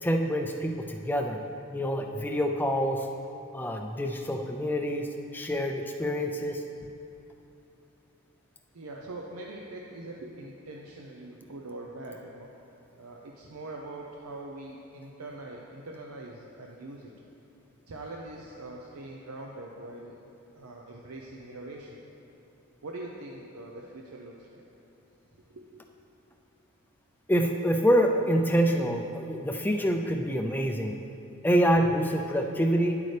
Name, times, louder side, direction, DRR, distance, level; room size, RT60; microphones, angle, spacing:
voice 1, 0.0-1.4 1.7-3.1 3.5-5.1 5.3-6.6 27.3-30.9 31.4-33.0, equal, 10° left, 3 dB, 0.4 m, -26 dB
voice 2, 8.7-12.5 13.0-17.1 17.9-20.2 20.5-22.0 22.8-24.6 25.4-25.8, right 2 dB, 90° right, -1 dB, 0.7 m, -43 dB
10.5 x 8.3 x 3.3 m, 2.7 s
head